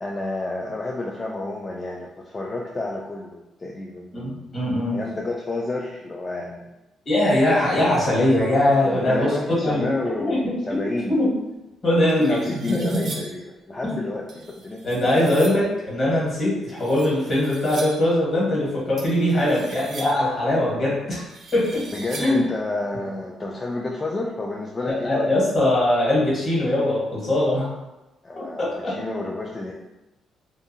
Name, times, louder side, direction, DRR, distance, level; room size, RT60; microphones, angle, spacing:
voice 1, 0.0-4.6 4.9-6.7 8.7-11.2 11.9-15.1 21.9-25.3 28.2-29.7, left 2 dB, 25° left, -1 dB, 0.3 m, -30 dB
voice 2, 4.1-5.0 7.0-10.8 11.1-11.3 11.8-13.1 13.8-13.9 14.8-21.2 21.5-21.8 22.2-22.4 24.9-27.7 28.3-28.9, left 1 dB, 45° left, -6 dB, 1.3 m, -21 dB
sound 1, 11.6-11.7 12.1-13.5 14.3-15.7 16.7-18.1 19.0-20.3 21.1-22.5, right 3 dB, 55° right, 0.5 m, -40 dB
2.5 x 2.5 x 2.7 m, 0.99 s
cardioid pair, 90°, 0 cm